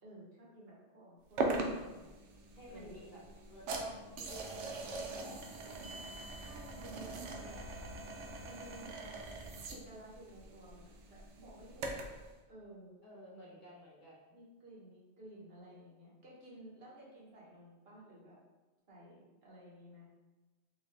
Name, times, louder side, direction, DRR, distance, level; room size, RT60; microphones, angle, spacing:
voice 1, 0.0-2.1 2.7-3.0 5.0-5.7 6.4-7.6 8.4-12.0 12.5-12.9 14.3-18.4 18.9-20.1, right 1 dB, 60° right, -5 dB, 1.2 m, -55 dB
sound 1, 1.4-12.2, right 2 dB, 80° right, 0.9 m, -41 dB
voice 2, 2.5-3.2 3.5-6.2 13.0-14.4, left 1 dB, 45° left, -6 dB, 1.1 m, -54 dB
3.9 x 2.6 x 3.2 m, 1.2 s
omnidirectional pair, 1.2 m